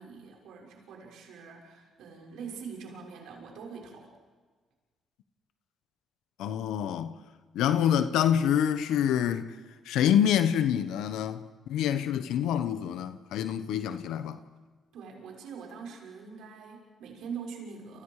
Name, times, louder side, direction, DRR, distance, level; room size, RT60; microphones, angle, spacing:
voice 1, 0.0-4.1 14.9-18.0, right 6 dB, 80° right, 6.6 m, -43 dB
voice 2, 6.4-7.2 7.5-9.5 9.8-14.4, left 9 dB, 90° left, 1.2 m, -26 dB
29.5 x 29.5 x 5.0 m
cardioid pair, 90°, 0 cm